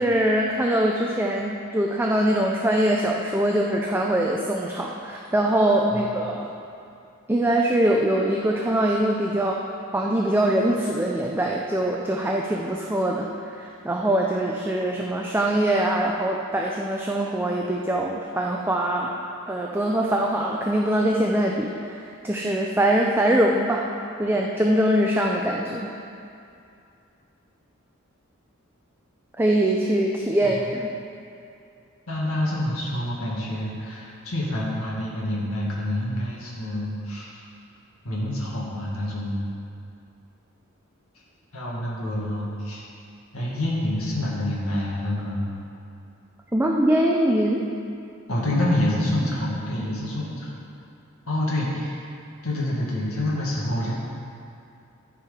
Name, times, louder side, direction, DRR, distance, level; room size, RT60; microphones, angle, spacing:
voice 1, 0.0-6.5 7.3-9.6 9.9-13.3 13.5-19.1 19.5-23.9 24.2-25.9 29.4-30.9 46.5-47.7, right 1 dB, 10° right, -1 dB, 0.5 m, -23 dB
voice 2, 32.1-37.3 38.0-39.4 41.5-42.8 43.3-45.5 48.3-50.5 51.2-52.0 52.4-53.9, left 1 dB, 85° left, -5 dB, 2.0 m, -27 dB
13.5 x 4.7 x 5.0 m, 2.6 s
head